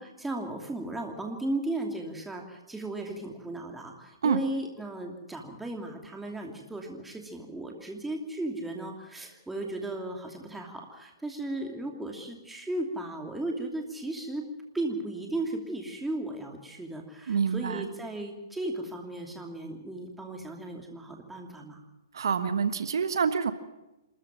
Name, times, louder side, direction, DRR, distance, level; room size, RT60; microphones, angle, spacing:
voice 1, 0.0-14.5 14.7-21.8, right 2 dB, 5° right, 1 dB, 2.8 m, -36 dB
voice 2, 17.3-17.9 22.1-23.5, right 6 dB, 75° right, 10 dB, 1.3 m, -27 dB
26.5 x 14.0 x 7.5 m, 1.0 s
hypercardioid pair, 140°, 2 cm